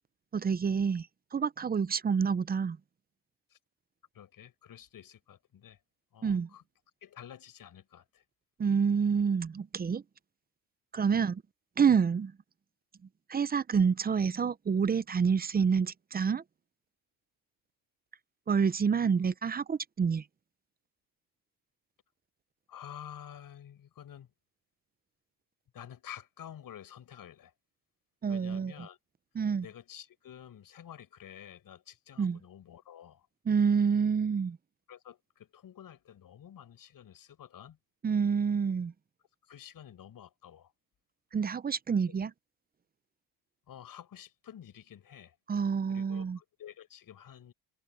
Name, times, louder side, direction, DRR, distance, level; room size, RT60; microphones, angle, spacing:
voice 1, 0.3-1.1 1.3-2.8 6.2-6.5 8.6-10.0 10.9-11.4 11.8-12.3 13.3-16.4 18.5-20.2 28.2-28.7 29.3-29.7 32.2-32.4 33.5-34.6 38.0-38.9 41.3-42.3 45.5-46.4, right 6 dB, 25° right, 0.5 m, -28 dB
voice 2, 4.1-5.8 6.1-6.6 7.0-8.2 11.1-11.3 22.7-24.3 25.7-27.5 28.3-29.0 29.6-33.3 34.9-37.8 39.4-40.7 41.9-42.2 43.7-45.4 45.9-47.5, left 10 dB, 55° left, 6.9 m, -50 dB
cardioid pair, 125°, 41 cm